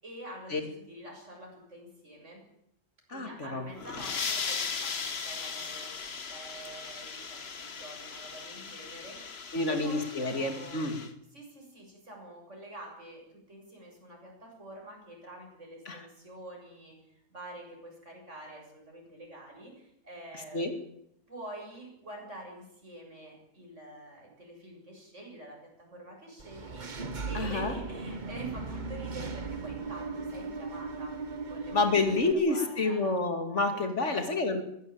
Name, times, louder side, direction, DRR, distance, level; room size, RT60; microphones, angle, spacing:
voice 1, 0.0-2.4 3.1-6.0 6.3-9.4 9.7-10.9 11.3-17.0 17.3-20.7 21.3-31.2 31.5-33.2 33.5-34.3, right 1 dB, 90° right, 0 dB, 7.8 m, -47 dB
voice 2, 3.1-3.6 9.5-11.0 15.9-16.0 20.5-20.7 27.3-27.7 31.7-34.6, left 3 dB, 80° left, 7 dB, 2.9 m, -28 dB
sound 1, 3.6-11.1, left 5 dB, 60° left, 1.5 m, -38 dB
Engine / Mechanisms, 26.4-32.3, right 4 dB, 40° right, 1.4 m, -37 dB
20.5 x 16.5 x 8.7 m, 0.76 s
omnidirectional pair, 1.2 m